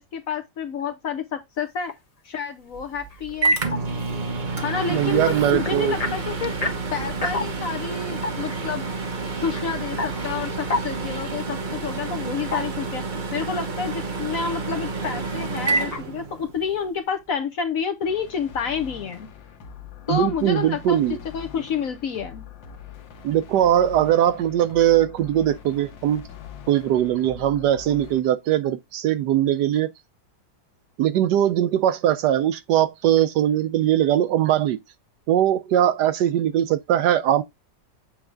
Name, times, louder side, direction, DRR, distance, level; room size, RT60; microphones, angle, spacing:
voice 1, 0.0-1.9 2.2-3.6 4.6-6.5 6.9-8.9 9.4-13.0 13.3-19.3 20.1-21.0 21.3-22.4, left 6 dB, 60° left, 1.0 m, -29 dB
sound 1, 1.9-2.2 2.5-13.3 13.5-14.3 14.6-15.1 15.8-16.1, left 3 dB, 35° left, 0.6 m, -34 dB
Microwave oven, 2.7-16.8, right 3 dB, 35° right, 0.9 m, -28 dB
voice 2, 4.9-6.0 20.1-21.2 23.2-26.3 26.7-29.9 31.0-34.8 35.3-37.4, right 11 dB, 75° right, 1.1 m, -20 dB
sound 2, 18.0-28.2, left 8 dB, 90° left, 1.7 m, -43 dB
7.9 x 3.5 x 3.8 m
omnidirectional pair, 2.0 m